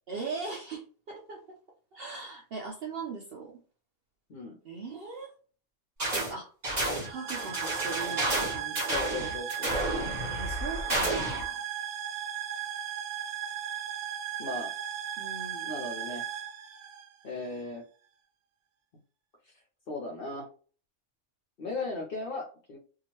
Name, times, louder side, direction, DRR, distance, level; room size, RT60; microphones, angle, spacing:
voice 1, 0.1-1.4 1.9-3.5 4.6-5.3 6.1-6.5 7.1-8.8 9.2-9.3 10.3-11.6 15.2-15.7, right 4 dB, 60° right, -1 dB, 0.6 m, -39 dB
sound 1, 6.0-6.3 6.6-11.4, right 1 dB, 30° right, 1.1 m, -31 dB
sound 2, 7.0-17.6, right 10 dB, 90° right, 1.1 m, -36 dB
voice 2, 8.9-9.7 14.4-14.7 15.6-16.2 17.2-17.8 19.4-19.5 19.9-20.5 21.6-22.8, left 3 dB, 60° left, 0 dB, 0.6 m, -37 dB
2.8 x 2.3 x 3.0 m, 0.40 s
omnidirectional pair, 1.5 m